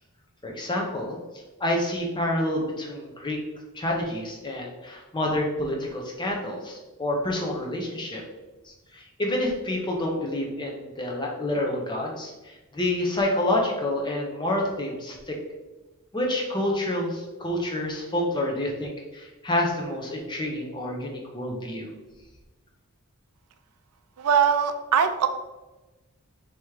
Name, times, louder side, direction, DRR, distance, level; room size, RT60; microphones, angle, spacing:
voice 1, 0.4-1.2 1.6-3.4 3.7-8.2 8.6-15.4 16.1-21.9, left 1 dB, 20° left, 0 dB, 0.7 m, -28 dB
voice 2, 24.2-25.3, right 7 dB, 85° right, 9 dB, 0.4 m, -21 dB
3.6 x 3.0 x 4.6 m, 1.1 s
head